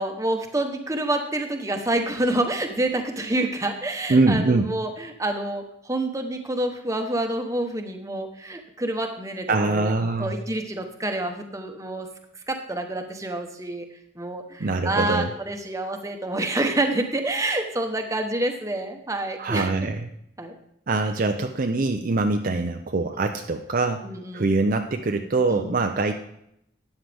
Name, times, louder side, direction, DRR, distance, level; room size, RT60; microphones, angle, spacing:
voice 1, 0.0-9.9 10.2-12.1 12.3-13.9 14.2-19.7 20.4-20.5 23.1-23.3 24.0-24.5 25.5-25.8, right 1 dB, 15° right, 5 dB, 1.0 m, -28 dB
voice 2, 4.1-4.7 9.5-10.3 14.6-15.3 19.4-20.1 20.9-24.0 24.3-26.1, right 3 dB, 45° right, 5 dB, 0.5 m, -23 dB
13.0 x 9.3 x 3.4 m, 0.75 s
head